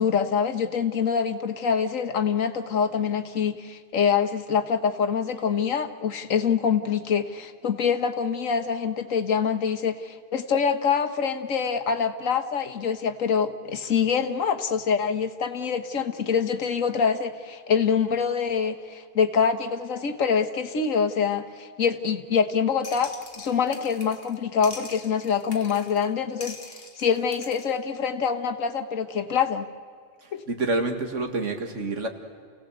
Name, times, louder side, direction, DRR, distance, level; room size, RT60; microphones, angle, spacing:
voice 1, 0.0-26.6 27.0-29.7 30.3-30.4, left 6 dB, 85° left, 7 dB, 1.6 m, -25 dB
sound 1, 22.8-24.4 24.6-26.1 26.4-27.7, left 3 dB, 50° left, 2.1 m, -43 dB
voice 2, 30.2-32.1, right 2 dB, 70° right, 5 dB, 2.2 m, -28 dB
28.5 x 17.0 x 8.1 m, 2.1 s
omnidirectional pair, 1.3 m